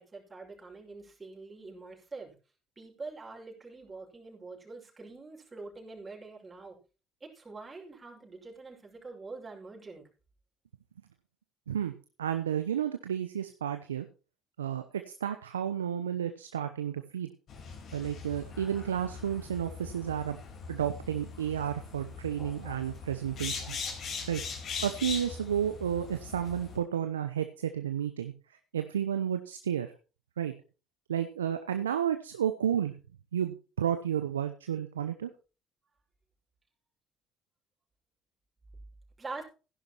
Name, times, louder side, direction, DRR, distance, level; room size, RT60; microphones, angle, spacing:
voice 1, 0.0-2.3 2.8-6.8 7.2-10.1 39.2-39.4, right 3 dB, 25° right, 0 dB, 5.6 m, -45 dB
voice 2, 12.2-14.1 14.6-14.8 15.2-17.3 17.9-20.4 20.7-23.9 24.3-24.4 24.8-28.3 28.7-29.9 30.4-30.5 31.1-32.9 33.3-35.3, right 9 dB, 85° right, 9 dB, 0.8 m, -31 dB
sound 1, 17.5-26.8, left 5 dB, 55° left, 4.1 m, -41 dB
15.5 x 11.0 x 3.0 m, 0.33 s
hypercardioid pair, 60°, 0 cm